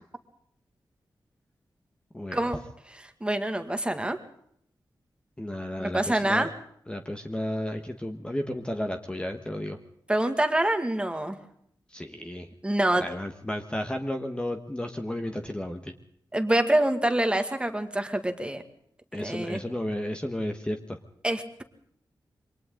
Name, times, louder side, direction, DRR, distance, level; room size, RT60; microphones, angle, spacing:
voice 1, 2.1-2.5 5.4-6.5 6.9-9.8 11.9-12.5 13.0-15.9 19.1-21.0, left 1 dB, 10° left, 4 dB, 1.5 m, -33 dB
voice 2, 3.2-4.2 5.8-6.5 10.1-11.4 12.6-13.0 16.3-18.6 19.2-19.6 21.2-21.6, right 1 dB, 10° right, 7 dB, 2.0 m, -26 dB
28.0 x 24.5 x 3.9 m, 0.68 s
wide cardioid pair, 135°, 8 cm